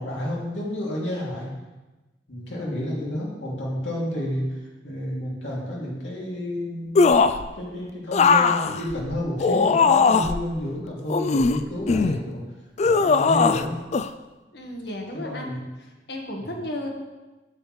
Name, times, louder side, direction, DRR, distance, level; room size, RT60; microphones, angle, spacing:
voice 1, 0.0-1.5 2.3-7.1 7.5-12.4 12.8-13.8 15.1-15.6 16.4-16.6, left 1 dB, 90° left, -4 dB, 2.6 m, -30 dB
sound 1, 7.0-7.5 8.1-10.4 11.1-12.2 12.8-13.7 13.9-14.1, left 4 dB, 40° left, 0.3 m, -19 dB
voice 2, 14.5-15.5 15.8-16.9, left 1 dB, 65° left, 1 dB, 1.4 m, -34 dB
8.7 x 8.2 x 3.2 m, 1.1 s
head